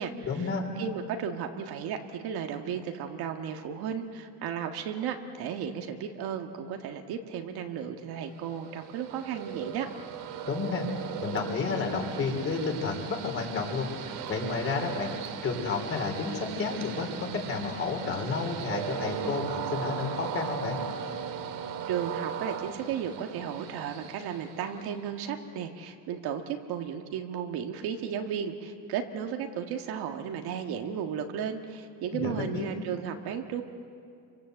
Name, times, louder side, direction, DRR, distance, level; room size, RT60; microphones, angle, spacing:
voice 1, 0.2-0.7 10.5-10.9 11.2-13.9 14.3-15.1 15.4-20.8 32.1-32.7, left 4 dB, 30° left, 2 dB, 3.7 m, -31 dB
voice 2, 0.8-9.9 21.9-33.6, right 8 dB, 60° right, 4 dB, 1.7 m, -34 dB
Train, 8.3-25.1, right 8 dB, 90° right, 2.2 m, -38 dB
28.5 x 25.0 x 8.0 m, 2.4 s
cardioid pair, 170°, 42 cm